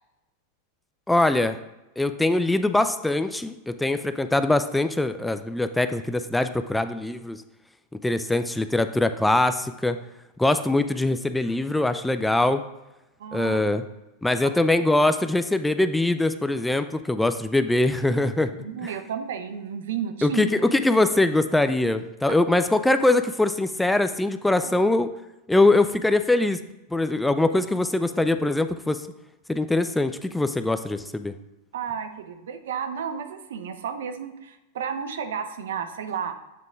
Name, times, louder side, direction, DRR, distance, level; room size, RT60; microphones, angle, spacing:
voice 1, 1.1-1.6 2.0-7.4 8.0-10.0 10.4-12.6 13.3-13.8 14.2-18.5 18.8-18.9 20.2-25.1 25.5-26.6 26.9-29.1 29.5-31.3, left 2 dB, 5° left, 10 dB, 0.3 m, -22 dB
voice 2, 13.2-13.6 14.4-14.5 18.6-20.7 22.3-22.4 24.6-24.7 31.7-36.4, right 7 dB, 75° right, 9 dB, 0.6 m, -32 dB
7.6 x 3.7 x 3.5 m, 0.98 s
hypercardioid pair, 105°, 0 cm